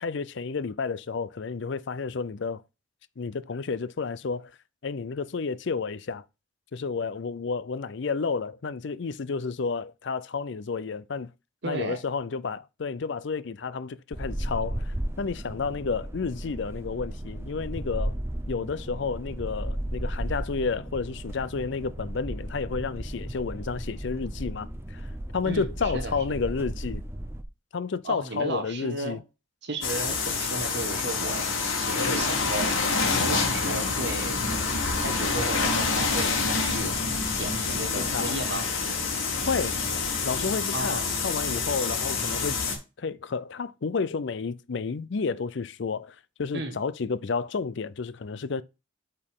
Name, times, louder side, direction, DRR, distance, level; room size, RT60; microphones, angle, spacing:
voice 1, 0.0-2.6 3.2-4.5 4.8-6.2 6.7-11.3 11.6-18.2 18.5-25.1 25.3-27.0 27.7-29.2 38.0-38.4 39.5-39.8 40.2-42.6 43.0-48.6, left 4 dB, 60° left, 0.5 m, -31 dB
voice 2, 11.6-12.0 25.4-26.4 28.0-29.2 29.6-32.7 33.1-34.4 35.0-36.9 37.4-38.7 40.7-41.1 46.5-46.8, right 2 dB, 55° right, 1.4 m, -34 dB
sound 1, 14.1-27.4, right 1 dB, 10° right, 0.6 m, -35 dB
sound 2, 29.8-42.8, left 4 dB, 80° left, 2.2 m, -27 dB
8.6 x 4.5 x 3.7 m
head